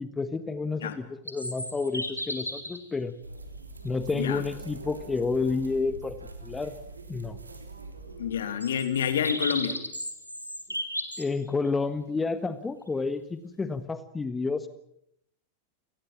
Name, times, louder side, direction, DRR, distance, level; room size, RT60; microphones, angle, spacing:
voice 1, 0.0-3.1 3.8-6.8 7.1-7.4 11.2-14.7, left 4 dB, 15° left, 12 dB, 1.4 m, -30 dB
sound 1, 1.3-2.8 3.9-4.0 8.6-11.3, equal, 90° left, 2.8 m, -34 dB
sound 2, 3.2-8.3, right 3 dB, 80° right, 3.4 m, -43 dB
voice 2, 8.2-9.8, left 8 dB, 65° left, 10 dB, 2.7 m, -28 dB
29.0 x 19.5 x 7.5 m, 0.72 s
figure-of-eight pair, 90°, 0 cm